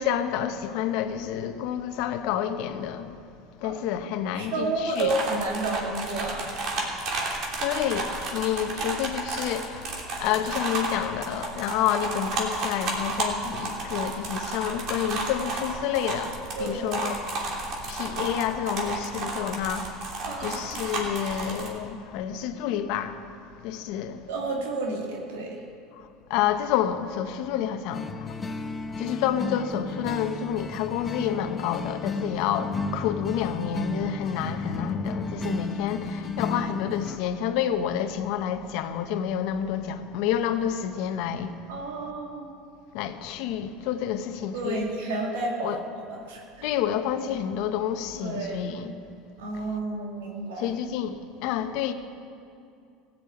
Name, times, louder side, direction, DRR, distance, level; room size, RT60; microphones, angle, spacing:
voice 1, 0.0-3.2 3.6-5.1 7.6-17.2 17.9-20.0 20.4-23.2 23.6-24.2 26.3-28.4 29.0-41.5 42.9-44.8 45.6-45.8 46.6-48.9 50.6-51.9, left 9 dB, 65° left, 1.0 m, -29 dB
voice 2, 4.3-6.5 16.6-17.0 20.2-20.8 24.3-25.6 41.7-42.6 44.5-46.7 48.2-48.8 49.4-50.8, right 2 dB, 85° right, 2.3 m, -31 dB
sound 1, 4.9-21.7, right 3 dB, 55° right, 3.1 m, -32 dB
sound 2, 27.9-37.2, left 3 dB, 20° left, 0.9 m, -33 dB
15.5 x 7.6 x 8.6 m
supercardioid pair, 100°, 0 cm